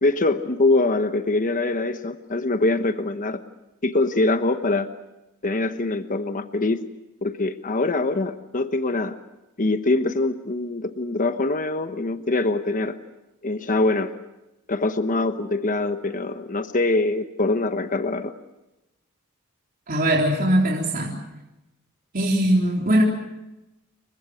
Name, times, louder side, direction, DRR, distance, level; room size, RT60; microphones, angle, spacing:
voice 1, 0.0-3.4 3.8-4.9 5.4-6.9 7.2-9.2 9.6-13.0 13.4-14.1 14.7-18.3, left 2 dB, 40° left, 8 dB, 1.1 m, -23 dB
voice 2, 19.9-21.1 22.1-23.0, right 1 dB, 40° right, -1 dB, 4.0 m, -20 dB
29.0 x 23.5 x 6.4 m, 0.96 s
head